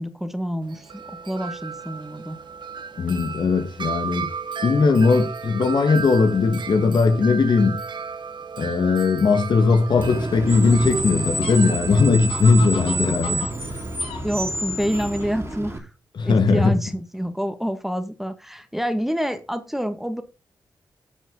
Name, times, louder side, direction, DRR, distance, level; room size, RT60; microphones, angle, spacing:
voice 1, 0.0-2.4 14.2-15.9 16.2-20.2, equal, 5° right, 1.6 m, -27 dB
Wind chime, 0.6-14.0, right 5 dB, 60° right, 1.3 m, -35 dB
voice 2, 3.0-4.3 4.6-7.8 8.6-13.5 16.2-16.8, left 4 dB, 60° left, 1.6 m, -19 dB
Fowl, 9.4-15.6, left 7 dB, 90° left, 1.8 m, -40 dB
Screech, 10.0-15.8, right 1 dB, 30° right, 2.9 m, -29 dB
10.5 x 6.4 x 3.7 m
supercardioid pair, 40°, 9 cm